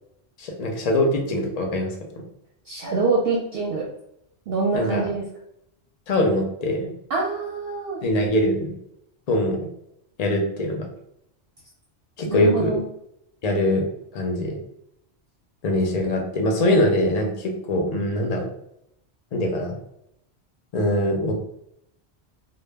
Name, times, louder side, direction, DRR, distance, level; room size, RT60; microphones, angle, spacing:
voice 1, 0.4-1.9 4.7-5.1 6.1-6.9 8.0-8.7 9.3-9.6 10.2-10.9 12.2-12.8 13.4-13.9 14.1-14.6 15.6-18.5 19.3-19.8 20.7-21.3, left 1 dB, 55° left, 1 dB, 0.4 m, -22 dB
voice 2, 2.7-3.9 4.5-5.2 7.1-8.0 12.3-12.8, right 3 dB, 65° right, -2 dB, 0.7 m, -25 dB
2.1 x 2.0 x 3.3 m, 0.77 s
omnidirectional pair, 1.2 m